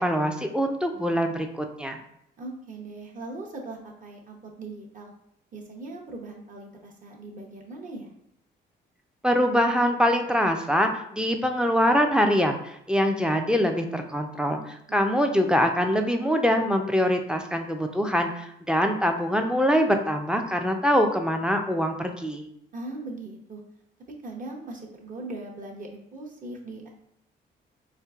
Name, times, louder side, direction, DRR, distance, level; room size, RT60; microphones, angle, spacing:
voice 1, 0.0-2.0 9.2-22.5, equal, 5° right, 4 dB, 0.4 m, -24 dB
voice 2, 2.4-5.1 5.5-8.1 14.9-15.2 22.7-23.6 24.2-26.9, right 2 dB, 40° right, -1 dB, 0.8 m, -39 dB
4.4 x 2.5 x 2.4 m, 0.74 s
cardioid pair, 90°, 20 cm